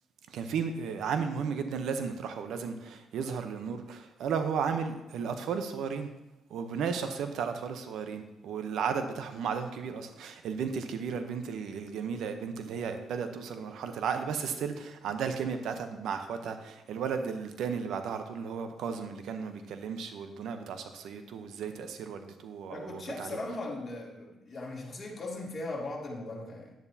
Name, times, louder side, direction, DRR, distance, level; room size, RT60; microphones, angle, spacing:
voice 1, 0.3-6.1 6.5-23.4, right 6 dB, 75° right, 8 dB, 0.8 m, -34 dB
voice 2, 22.7-26.7, left 2 dB, 40° left, -2 dB, 2.4 m, -38 dB
10.5 x 9.0 x 2.8 m, 0.99 s
cardioid pair, 90°, 0 cm